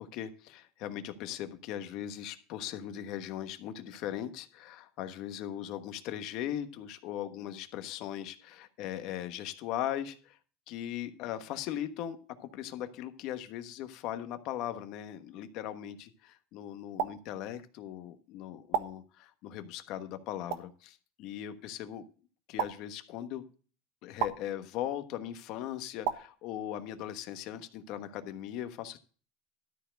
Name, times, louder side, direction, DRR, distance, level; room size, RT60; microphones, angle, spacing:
voice 1, 0.0-10.4 10.7-22.0 22.5-23.4 24.0-29.0, left 11 dB, 55° left, 9 dB, 1.2 m, -39 dB
sound 1, 17.0-17.1 18.7-18.9 20.5-20.6 22.6-22.7 24.2-24.3 26.0-26.2, right 9 dB, 70° right, 1.3 m, -30 dB
13.0 x 4.6 x 7.6 m, 0.39 s
supercardioid pair, 135°, 0 cm